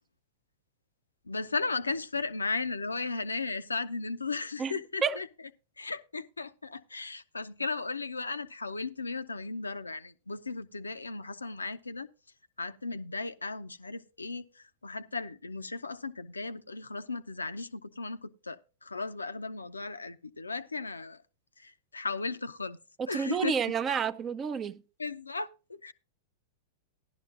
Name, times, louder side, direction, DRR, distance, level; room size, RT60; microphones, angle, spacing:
voice 1, 1.3-5.3 5.8-12.1 12.6-21.2 21.6-22.8 23.1-23.6 25.0-25.9, left 3 dB, 90° left, 0.6 m, -36 dB
voice 2, 4.6-5.2 23.0-24.8, right 6 dB, 25° right, 0.6 m, -30 dB
16.0 x 11.5 x 2.5 m
figure-of-eight pair, 100°, 0 cm